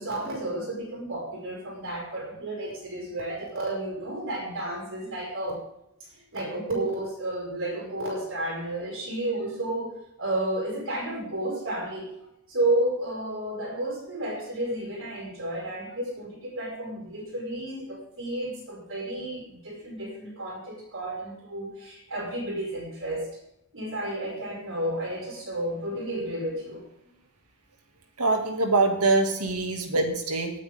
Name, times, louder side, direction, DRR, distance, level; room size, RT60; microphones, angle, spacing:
voice 1, 0.0-5.6 6.0-12.1 12.5-23.3 23.7-26.8, right 1 dB, 60° right, -3 dB, 5.6 m, -32 dB
voice 2, 28.2-30.5, right 3 dB, 85° right, 4 dB, 2.5 m, -24 dB
19.5 x 9.2 x 3.7 m, 0.82 s
head